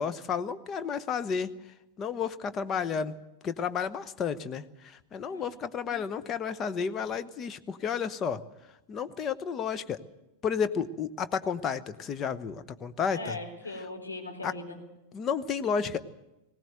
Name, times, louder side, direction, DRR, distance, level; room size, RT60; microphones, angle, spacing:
voice 1, 0.0-1.5 2.0-3.1 3.4-4.6 5.1-8.4 8.9-10.0 10.4-13.4 14.4-14.5 15.1-16.0, left 6 dB, 30° left, 11 dB, 1.0 m, -31 dB
voice 2, 13.1-14.8, left 2 dB, 80° left, 2 dB, 4.2 m, -39 dB
20.0 x 17.5 x 8.0 m, 0.93 s
figure-of-eight pair, 90°, 0 cm